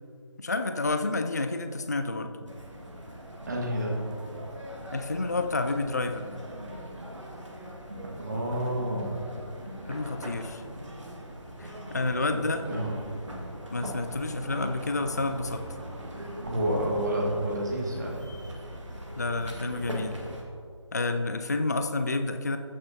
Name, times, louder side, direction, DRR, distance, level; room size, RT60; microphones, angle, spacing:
voice 1, 0.4-2.3 4.9-6.4 9.9-10.6 11.6-12.7 13.7-15.6 19.2-20.2 20.9-22.6, left 2 dB, 35° left, 7 dB, 0.4 m, -29 dB
sound 1, 2.5-20.4, equal, 75° right, 1.7 m, -41 dB
voice 2, 3.5-3.9 8.2-9.2 12.3-12.9 16.4-18.3, right 1 dB, 35° right, -1 dB, 1.5 m, -29 dB
14.0 x 6.6 x 2.7 m, 2.4 s
figure-of-eight pair, 160°, 16 cm